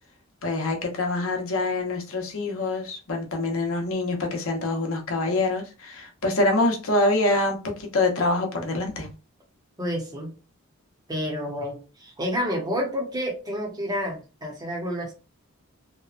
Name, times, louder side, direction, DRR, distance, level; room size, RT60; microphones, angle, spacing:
voice 1, 0.4-9.1, left 2 dB, 70° left, 0.8 m, -25 dB
voice 2, 9.8-10.4 11.1-15.1, equal, 20° right, 0.8 m, -29 dB
2.9 x 2.2 x 2.4 m
head